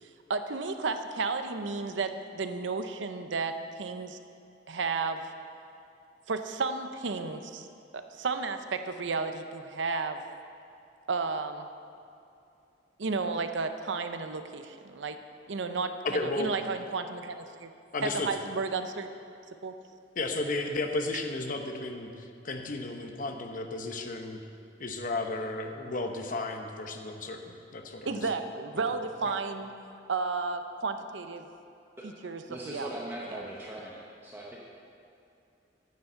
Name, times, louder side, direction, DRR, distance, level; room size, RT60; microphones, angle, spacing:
voice 1, 0.0-4.2 4.7-5.3 6.3-7.7 7.9-10.2 11.1-11.7 13.0-15.2 15.5-17.7 18.0-19.1 19.6-19.8 28.1-29.7 30.1-31.5 32.0-32.9, right 4 dB, 75° right, 8 dB, 0.7 m, -33 dB
voice 2, 16.0-16.5 17.9-18.3 20.2-24.4 24.8-28.3 29.2-29.3, left 2 dB, 45° left, 4 dB, 0.9 m, -33 dB
voice 3, 32.5-34.6, right 1 dB, 10° right, -5 dB, 1.0 m, -40 dB
9.4 x 7.0 x 7.7 m, 2.5 s
head